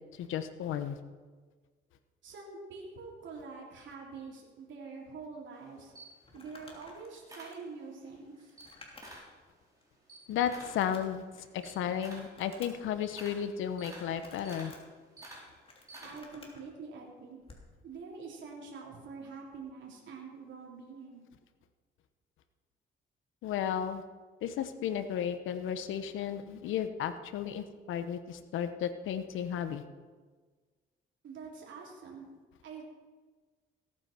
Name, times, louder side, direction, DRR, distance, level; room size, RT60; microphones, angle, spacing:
voice 1, 0.2-1.0 10.3-14.7 23.4-24.0 24.4-29.8, left 9 dB, 85° left, 10 dB, 1.1 m, -34 dB
voice 2, 2.2-5.9 6.3-8.5 16.0-17.4 17.8-21.3 31.2-32.3 32.6-32.8, right 4 dB, 70° right, -2 dB, 3.4 m, -46 dB
Camera, 5.5-8.1 8.5-9.4 9.7-16.5, right 1 dB, 15° right, 4.7 m, -51 dB
Crumpling crinkling, 6.2-9.4 9.8-9.9 10.4-11.6 12.0-12.9 13.9-14.8 15.4-16.6 17.4-17.7, left 2 dB, 30° left, 3.1 m, -54 dB
17.0 x 9.0 x 5.9 m, 1.4 s
cardioid pair, 90°, 20 cm